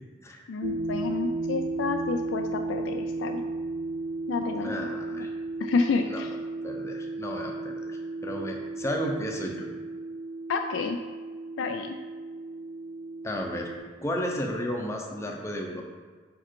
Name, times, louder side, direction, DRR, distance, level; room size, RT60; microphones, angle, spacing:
voice 1, 0.5-3.4 4.3-5.2 5.6-6.3 10.5-11.0 11.6-12.0, left 4 dB, 85° left, 5 dB, 0.4 m, -29 dB
sound 1, 0.6-13.8, right 2 dB, 65° right, 0.4 m, -34 dB
voice 2, 4.6-5.3 6.1-6.2 6.6-9.7 13.2-13.7 14.0-15.8, equal, 15° left, 1 dB, 0.7 m, -33 dB
5.4 x 4.9 x 4.5 m, 1.5 s
head